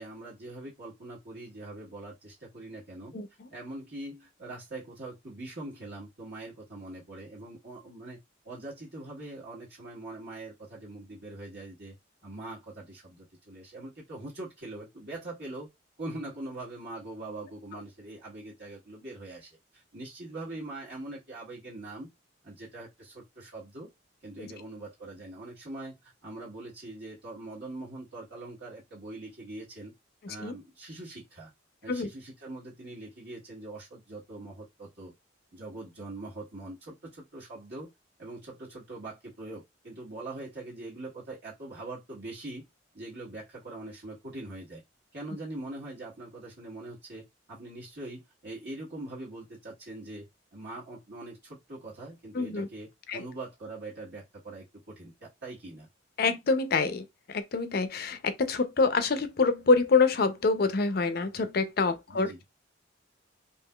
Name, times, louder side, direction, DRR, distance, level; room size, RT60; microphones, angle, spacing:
voice 1, 0.0-3.1 3.5-8.2 8.4-11.9 12.2-15.7 16.0-22.1 22.4-23.9 24.2-29.9 30.3-31.5 31.8-35.1 35.5-37.9 38.2-42.6 42.9-44.8 45.1-50.3 50.5-55.9 62.1-62.4, right 2 dB, 55° right, 1.2 m, -42 dB
voice 2, 3.1-3.5 24.4-24.5 30.2-30.5 31.9-32.1 52.3-52.7 53.1-53.2 56.2-62.3, left 4 dB, 50° left, 0.5 m, -26 dB
3.6 x 2.8 x 2.3 m
head